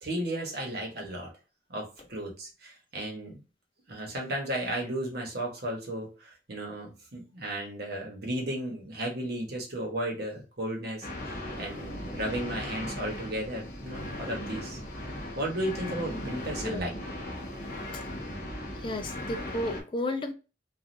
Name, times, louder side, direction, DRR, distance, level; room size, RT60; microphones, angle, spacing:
voice 1, 0.0-1.3 1.7-3.4 3.9-14.8 15.4-16.9, right 1 dB, 60° right, 1.1 m, -34 dB
sound 1, 11.0-19.8, left 1 dB, 50° left, 0.9 m, -38 dB
voice 2, 18.7-20.3, left 1 dB, 25° left, 0.4 m, -33 dB
3.2 x 2.4 x 2.6 m
head